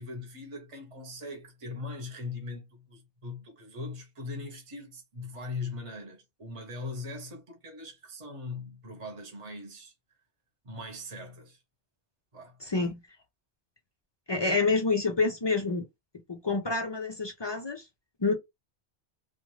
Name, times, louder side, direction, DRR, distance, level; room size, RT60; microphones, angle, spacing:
voice 1, 0.0-9.9 10.6-11.6 12.3-12.6, left 3 dB, 30° right, 0.9 m, -40 dB
voice 2, 12.6-13.0 14.3-15.9 16.3-17.8 18.2-18.4, left 3 dB, 45° left, 0.3 m, -27 dB
2.4 x 2.4 x 3.1 m
omnidirectional pair, 1.1 m